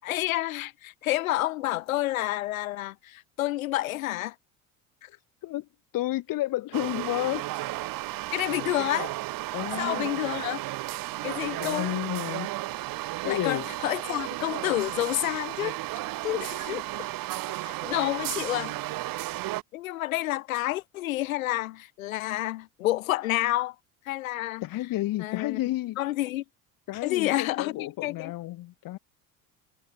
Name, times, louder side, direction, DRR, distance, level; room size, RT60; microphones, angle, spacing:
voice 1, 0.0-4.4 5.0-5.1 8.3-9.1 9.8-10.6 11.2-11.9 13.2-15.8 16.2-17.1 17.6-18.8 19.7-23.8 24.1-24.7 25.2-25.6 26.0-26.4 26.9-28.3, left 16 dB, 70° left, 5.9 m, -29 dB
voice 2, 5.9-7.4 9.5-10.0 11.6-12.5 13.2-13.7 24.6-26.0 26.9-29.0, left 16 dB, 50° left, 3.0 m, -31 dB
sound 1, 6.7-19.6, right 17 dB, 50° right, 3.4 m, -33 dB
figure-of-eight pair, 65°, 42 cm